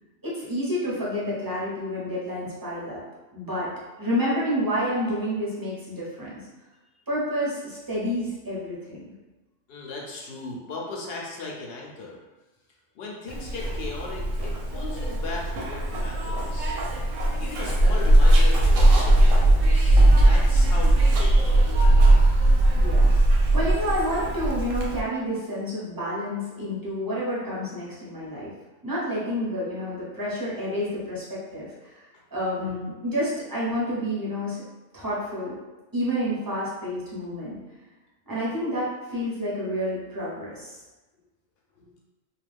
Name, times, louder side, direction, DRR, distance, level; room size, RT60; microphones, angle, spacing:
voice 1, 0.2-3.0 3.3-3.7 4.0-6.4 7.1-9.0 22.7-28.5 28.8-32.0 32.3-34.6 34.9-35.5 35.9-37.6 38.3-40.8, equal, 20° right, -8 dB, 0.8 m, -29 dB
voice 2, 9.7-12.2 12.9-16.8 17.4-21.8 31.5-31.6 32.6-32.8 41.8-41.9, left 3 dB, 60° left, -2 dB, 0.8 m, -38 dB
Zipper (clothing), 13.3-25.0, right 1 dB, 90° right, 1.0 m, -19 dB
2.4 x 2.2 x 3.3 m, 1.1 s
omnidirectional pair, 1.3 m